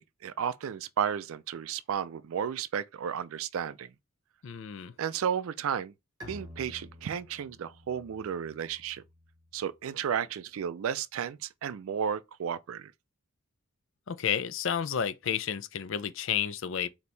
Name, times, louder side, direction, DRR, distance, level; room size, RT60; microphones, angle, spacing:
voice 1, 0.0-3.9 5.0-5.9 6.3-9.0 9.5-12.9, right 8 dB, 70° right, 0.3 m, -33 dB
voice 2, 4.4-4.9 14.1-16.9, left 8 dB, 60° left, 0.4 m, -31 dB
Bowed string instrument, 6.2-9.7, left 1 dB, 20° right, 1.3 m, -50 dB
4.3 x 2.8 x 3.2 m
head